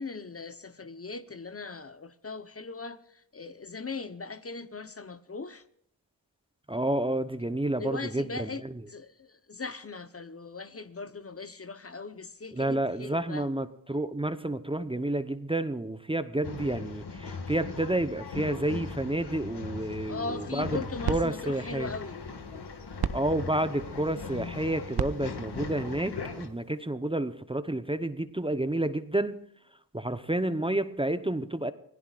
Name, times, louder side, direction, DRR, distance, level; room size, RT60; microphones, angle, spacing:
voice 1, 0.0-5.6 7.8-8.6 8.9-13.5 20.1-22.2, left 4 dB, 30° left, 1.0 m, -39 dB
voice 2, 6.7-8.7 12.5-20.8 21.1-21.9 23.1-29.4 29.9-31.7, right 1 dB, 10° right, 0.9 m, -30 dB
Male speech man speaking / Chatter / Rattle, 16.4-26.5, left 4 dB, 60° left, 2.0 m, -39 dB
sound 1, 20.5-26.9, right 7 dB, 55° right, 1.0 m, -38 dB
26.0 x 17.0 x 2.5 m
cardioid pair, 45°, 45 cm